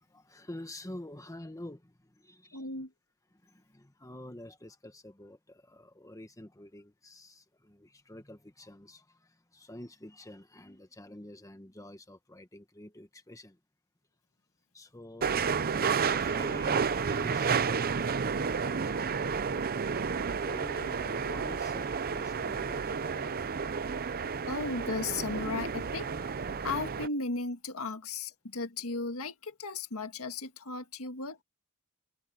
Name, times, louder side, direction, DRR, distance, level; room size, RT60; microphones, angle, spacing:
voice 1, 0.0-2.7 3.3-13.6 14.7-19.7 20.3-23.3, left 1 dB, 15° left, 1.3 m, -48 dB
voice 2, 2.5-2.9 24.5-26.1 26.6-31.4, left 3 dB, 70° left, 1.9 m, -35 dB
sound 1, 15.2-27.1, right 5 dB, 45° right, 0.6 m, -31 dB
head